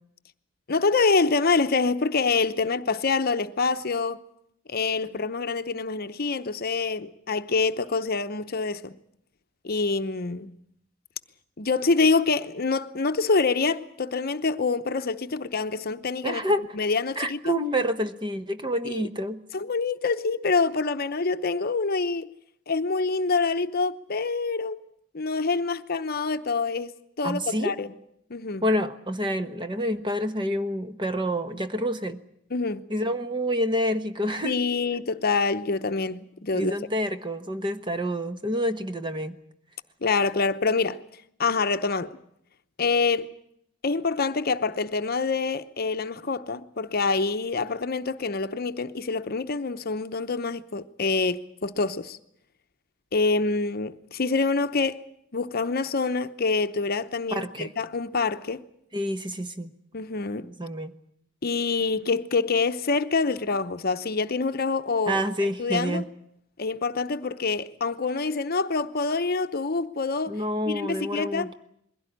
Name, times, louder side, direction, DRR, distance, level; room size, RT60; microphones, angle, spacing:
voice 1, 0.7-4.2 4.7-9.0 9.6-10.5 11.6-16.4 16.7-17.6 18.8-19.1 19.5-22.3 22.7-24.8 25.1-26.9 27.2-27.9 28.3-28.6 32.5-32.9 34.4-36.7 40.0-41.0 41.4-42.2 42.8-43.3 43.8-52.2 53.1-55.0 55.3-58.6 59.9-60.5 61.4-66.0 66.6-70.4 70.7-71.5, left 4 dB, 50° left, 0.8 m, -26 dB
voice 2, 16.2-16.7 17.2-19.4 27.2-27.7 28.6-32.2 32.9-34.6 36.5-39.4 57.3-57.7 58.9-59.7 60.4-60.9 65.1-66.1 70.3-71.5, equal, 25° right, 1.2 m, -28 dB
22.0 x 16.5 x 10.0 m
head